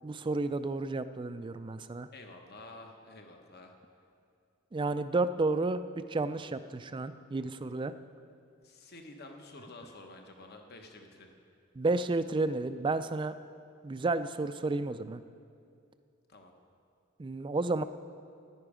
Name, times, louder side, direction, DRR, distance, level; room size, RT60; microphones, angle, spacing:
voice 1, 0.0-2.1 4.7-7.9 11.8-13.3 13.8-15.2 17.2-17.8, right 3 dB, 25° right, 12 dB, 0.3 m, -31 dB
voice 2, 2.1-3.8 8.6-11.3 16.3-16.5, left 2 dB, 50° left, 4 dB, 1.1 m, -50 dB
14.0 x 10.5 x 5.0 m, 2.4 s
head